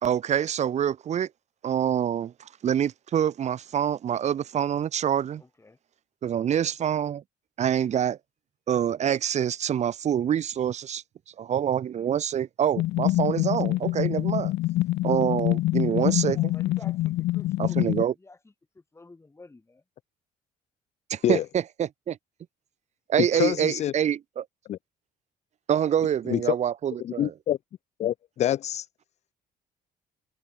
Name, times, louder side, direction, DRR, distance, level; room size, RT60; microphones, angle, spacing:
voice 1, 0.0-1.3 1.6-5.4 6.2-7.2 7.6-8.2 8.7-11.0 11.4-14.5 15.0-16.5 17.6-18.1 21.1-22.2 23.1-24.5 25.7-27.3, right 9 dB, 40° right, 0.7 m, -26 dB
voice 2, 5.4-5.8 16.2-18.4 18.9-19.8, left 3 dB, 15° left, 5.1 m, -50 dB
sound 1, 12.8-18.0, left 17 dB, 75° left, 0.9 m, -25 dB
voice 3, 23.2-23.9 24.7-24.8 26.3-26.5 27.0-27.6 28.0-28.9, left 11 dB, 40° left, 0.4 m, -26 dB
cardioid pair, 110°, 17 cm